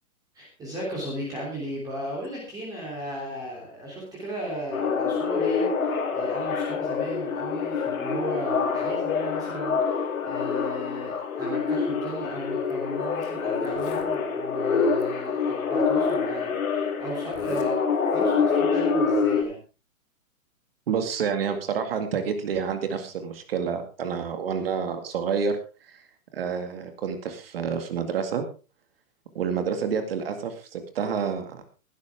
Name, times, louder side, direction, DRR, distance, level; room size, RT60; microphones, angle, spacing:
voice 1, 0.3-17.8 18.1-19.6, equal, 10° right, -4 dB, 3.2 m, -35 dB
sound 1, 4.7-19.4, left 5 dB, 75° left, 3.8 m, -26 dB
Zipper (clothing), 12.6-12.7 13.2-13.3 13.6-14.1 15.0-15.1 16.0-16.1 17.2-17.7 18.1-18.4, left 8 dB, 15° left, 1.1 m, -46 dB
voice 2, 20.9-26.0 26.3-28.4 29.3-31.6, right 6 dB, 40° right, 7 dB, 2.1 m, -29 dB
15.5 x 12.5 x 3.6 m, 0.33 s
hypercardioid pair, 170°, 42 cm